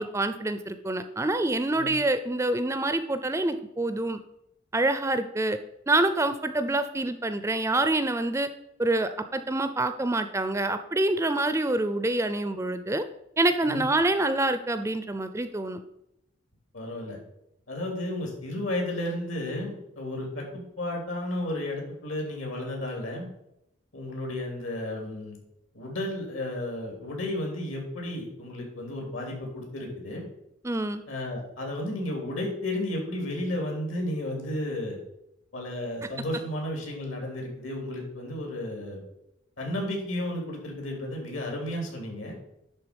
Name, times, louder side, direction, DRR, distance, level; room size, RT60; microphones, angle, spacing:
voice 1, 0.0-4.2 4.7-5.6 5.9-8.5 8.8-13.0 13.4-15.8 30.6-31.0, right 2 dB, 15° right, 10 dB, 0.4 m, -26 dB
voice 2, 16.7-17.2 17.7-23.3 23.9-25.4 25.7-30.2 31.1-35.0 35.5-39.0 39.6-42.3, left 1 dB, 80° left, 0 dB, 2.9 m, -33 dB
11.0 x 4.0 x 5.2 m, 0.83 s
head